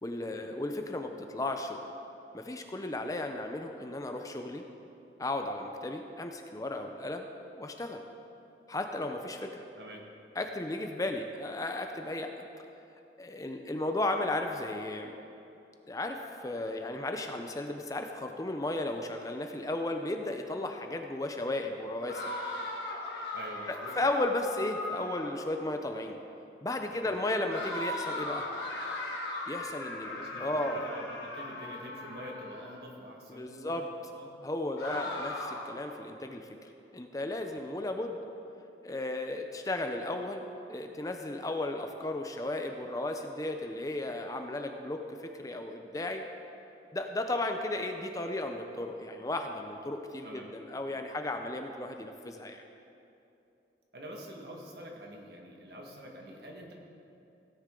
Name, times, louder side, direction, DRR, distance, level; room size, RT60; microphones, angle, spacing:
voice 1, 0.0-1.9 2.3-4.6 5.2-7.3 7.6-8.0 8.7-9.6 10.4-12.4 13.2-15.2 15.9-22.3 23.7-26.2 26.6-28.5 29.5-30.8 33.3-33.9 34.4-38.2 38.8-45.0 45.4-46.2 46.9-52.6, left 2 dB, 20° left, 5 dB, 0.5 m, -34 dB
sound 1, 22.1-25.5 27.5-32.8 34.8-35.8, left 2 dB, 75° left, 1.9 m, -38 dB
voice 2, 23.3-23.9 26.9-27.1 30.1-34.3 34.9-35.1 37.5-37.6 50.2-50.4 53.9-56.7, equal, 60° right, 0 dB, 1.7 m, -46 dB
16.5 x 9.6 x 3.8 m, 2.8 s
head